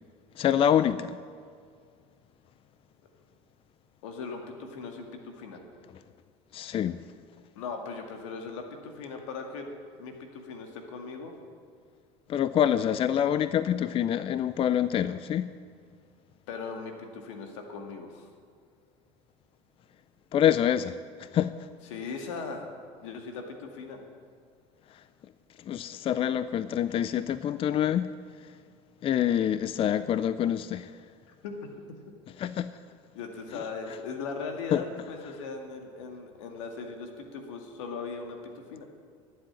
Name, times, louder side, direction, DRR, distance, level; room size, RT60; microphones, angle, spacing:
voice 1, 0.4-1.2 6.5-7.0 12.3-15.5 20.3-21.5 25.7-28.1 29.0-30.9 32.4-32.7 34.7-34.8, left 10 dB, 35° left, 14 dB, 0.5 m, -26 dB
voice 2, 4.0-5.6 7.6-9.7 10.0-11.3 16.5-18.3 21.9-22.7 23.0-24.0 31.4-31.6 33.1-38.4 38.7-38.9, left 4 dB, 85° left, 4 dB, 2.1 m, -39 dB
12.0 x 7.8 x 9.8 m, 2.1 s
supercardioid pair, 100°, 16 cm